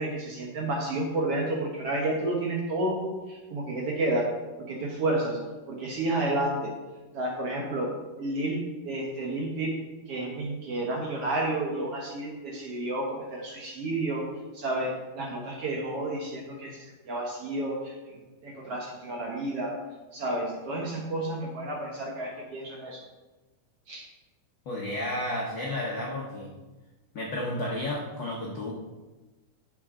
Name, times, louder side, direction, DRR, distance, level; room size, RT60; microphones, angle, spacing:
voice 1, 0.0-4.3 4.7-5.4 5.7-6.7 7.1-9.8 10.1-19.8 20.1-23.0 23.9-24.1, right 2 dB, 60° right, -1 dB, 1.6 m, -31 dB
voice 2, 24.6-26.5 27.1-28.7, left 1 dB, 85° left, -3 dB, 1.0 m, -32 dB
11.0 x 7.4 x 3.8 m, 1.2 s
omnidirectional pair, 4.1 m